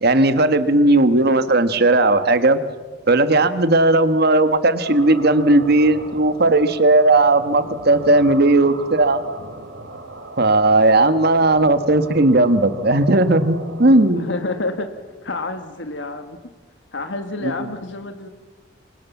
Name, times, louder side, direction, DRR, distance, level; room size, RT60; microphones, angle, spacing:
voice 1, 0.0-2.6 3.1-9.2 10.4-14.3 17.4-17.5, right 2 dB, 55° right, 11 dB, 1.5 m, -16 dB
sound 1, 4.8-14.1, right 2 dB, 80° right, 3.1 m, -37 dB
voice 2, 14.1-14.9 15.2-16.4 16.9-18.3, left 2 dB, 65° left, 8 dB, 1.5 m, -28 dB
28.0 x 24.5 x 7.2 m, 1.4 s
head